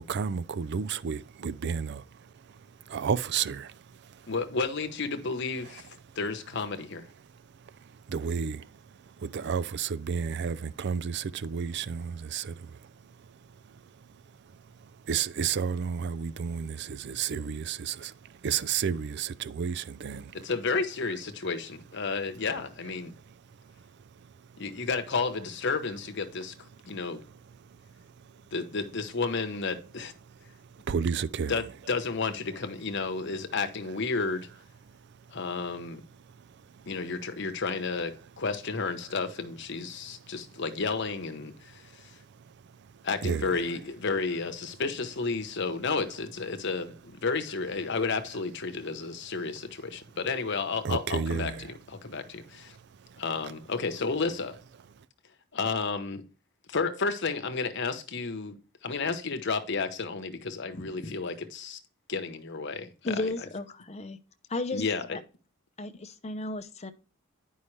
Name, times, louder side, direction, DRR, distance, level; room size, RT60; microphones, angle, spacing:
voice 1, 0.0-2.0 2.5-2.6 2.9-3.8 5.1-5.2 5.8-6.0 8.1-8.7 9.2-12.8 15.1-20.5 21.0-21.2 21.9-22.0 22.5-22.9 30.0-30.1 30.8-31.9 32.2-32.6 33.9-34.0 43.2-43.6 50.8-51.8 54.5-54.6, right 6 dB, 55° right, 0.4 m, -32 dB
voice 2, 4.3-5.9 6.2-7.1 20.3-23.1 24.6-26.5 26.9-27.2 28.5-30.1 31.5-34.5 35.3-36.0 36.9-42.1 43.0-52.8 53.2-54.6 55.5-56.2 56.7-61.8 62.1-63.5 64.7-65.1, left 4 dB, 60° left, 1.0 m, -32 dB
voice 3, 60.7-61.2 63.0-64.2 64.5-64.8 65.1-65.2 65.8-66.9, left 2 dB, 30° left, 0.7 m, -34 dB
9.8 x 5.5 x 3.2 m
head